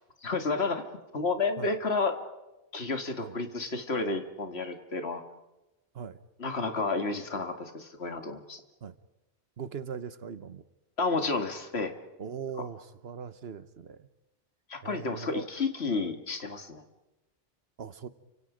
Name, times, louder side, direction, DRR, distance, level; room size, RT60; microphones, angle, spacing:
voice 1, 0.2-0.8 1.1-2.2 2.7-5.2 6.4-8.6 11.0-11.9 14.7-16.8, left 3 dB, 80° left, 7 dB, 2.3 m, -31 dB
voice 2, 9.6-10.6 12.2-14.1 14.8-15.5 15.9-16.1 17.8-18.1, right 7 dB, 75° right, 14 dB, 1.3 m, -40 dB
29.5 x 25.5 x 5.1 m, 1.0 s
omnidirectional pair, 1.1 m